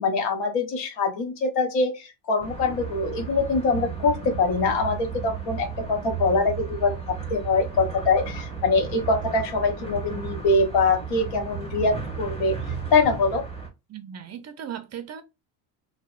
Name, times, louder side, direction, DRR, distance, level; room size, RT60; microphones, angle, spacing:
voice 1, 0.0-12.6 12.9-13.4, left 3 dB, 70° left, 1.0 m, -24 dB
sound 1, 2.4-13.7, right 6 dB, 10° left, 1.1 m, -34 dB
voice 2, 13.9-15.2, right 9 dB, 35° right, 0.5 m, -37 dB
2.7 x 2.2 x 2.4 m
supercardioid pair, 75°, 47 cm